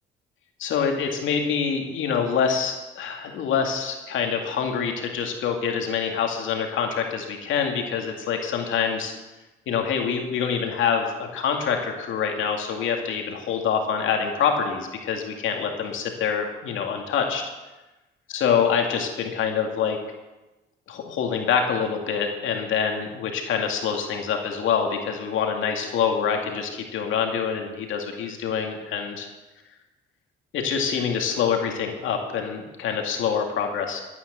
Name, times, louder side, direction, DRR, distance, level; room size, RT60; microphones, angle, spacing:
voice 1, 0.6-9.1 9.7-17.4 18.3-20.0 20.9-29.3 30.5-34.0, left 7 dB, 80° left, 3 dB, 2.3 m, -25 dB
13.5 x 9.2 x 6.8 m, 1.1 s
cardioid pair, 90°, 20 cm